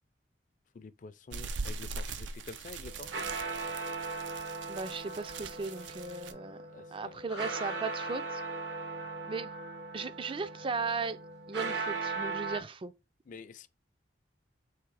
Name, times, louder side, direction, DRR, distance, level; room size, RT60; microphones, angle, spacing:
voice 1, 0.7-3.1 6.7-7.2 13.3-13.7, left 4 dB, 45° left, 0.4 m, -48 dB
sound 1, 1.3-6.3, right 4 dB, 90° right, 0.5 m, -41 dB
sound 2, 2.8-12.6, right 3 dB, 70° right, 0.8 m, -38 dB
voice 2, 4.7-6.6 6.9-8.4 9.3-9.5 9.9-11.2 11.5-12.9, right 4 dB, 30° right, 0.3 m, -36 dB
sound 3, 7.3-10.0, left 3 dB, 90° left, 0.8 m, -49 dB
3.6 x 3.1 x 4.6 m
head